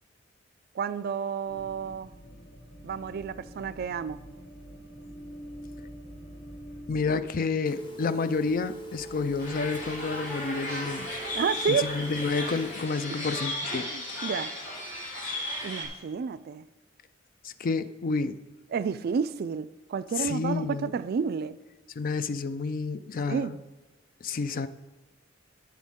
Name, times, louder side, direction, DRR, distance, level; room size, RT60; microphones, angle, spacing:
voice 1, 0.7-2.1 2.8-4.2 11.3-11.9 13.7-14.5 15.6-16.7 18.7-21.6 23.3-23.6, right 6 dB, 50° right, 0.3 m, -30 dB
sound 1, 1.5-7.1, equal, 80° left, 2.8 m, -45 dB
voice 2, 6.9-11.2 11.7-13.9 17.4-18.4 20.2-20.9 22.0-23.6 24.2-24.7, left 4 dB, 45° left, 0.4 m, -30 dB
Telephone, 7.6-12.9, right 2 dB, 25° left, 1.1 m, -42 dB
sound 2, 9.4-15.9, left 1 dB, 65° left, 2.8 m, -35 dB
11.5 x 7.2 x 3.6 m
head